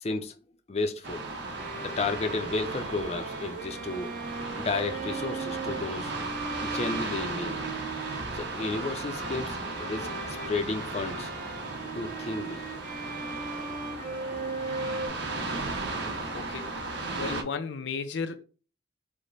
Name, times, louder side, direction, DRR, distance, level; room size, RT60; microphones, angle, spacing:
voice 1, 0.0-0.3 0.7-1.2 1.8-4.1 4.6-6.1 6.6-7.6 8.3-11.3 11.9-12.6, left 3 dB, 35° left, 0.5 m, -32 dB
sound 1, 1.0-17.4, right 2 dB, 80° right, 0.9 m, -36 dB
Bowed string instrument, 1.6-15.1, right 3 dB, 50° right, 1.0 m, -38 dB
voice 2, 16.3-16.8 17.1-18.4, left 5 dB, 90° left, 0.5 m, -34 dB
5.0 x 2.1 x 4.0 m
head